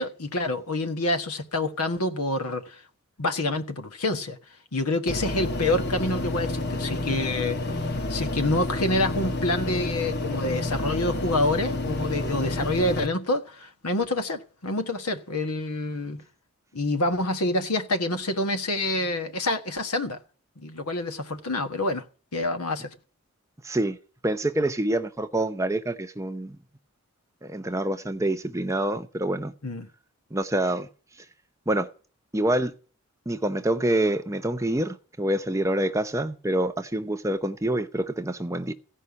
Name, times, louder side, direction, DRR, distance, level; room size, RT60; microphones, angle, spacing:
voice 1, 0.0-2.8 3.2-4.4 4.7-16.2 16.7-20.2 20.6-22.0 22.3-22.9 29.6-29.9, left 2 dB, 85° left, 1.4 m, -27 dB
sound 1, 5.1-13.1, left 2 dB, 45° left, 1.2 m, -29 dB
voice 2, 23.6-24.0 24.2-26.6 27.4-29.5 30.3-30.9 31.7-31.9 32.3-32.7 33.3-38.7, right 1 dB, 15° right, 0.7 m, -26 dB
16.0 x 5.6 x 9.6 m
head